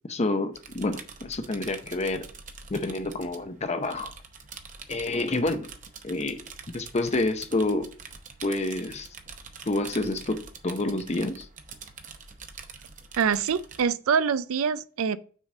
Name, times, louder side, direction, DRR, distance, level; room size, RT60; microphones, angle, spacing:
voice 1, 0.1-2.3 2.7-4.1 4.9-5.7 6.0-6.4 6.7-7.9 8.4-9.1 9.7-11.5, left 2 dB, 30° left, 0.6 m, -28 dB
sound 1, 0.5-13.8, right 5 dB, 35° right, 0.8 m, -45 dB
voice 2, 13.2-15.2, right 6 dB, 80° right, 0.4 m, -25 dB
6.3 x 4.1 x 6.0 m
head